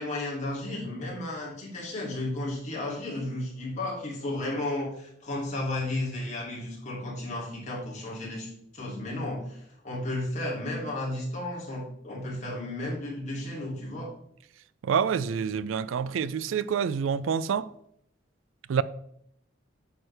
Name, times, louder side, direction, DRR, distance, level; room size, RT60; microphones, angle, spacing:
voice 1, 0.0-14.1, left 1 dB, 35° left, 2.7 m, -33 dB
voice 2, 14.8-17.7 18.7-18.8, right 7 dB, 80° right, 0.4 m, -27 dB
8.8 x 6.3 x 3.3 m
head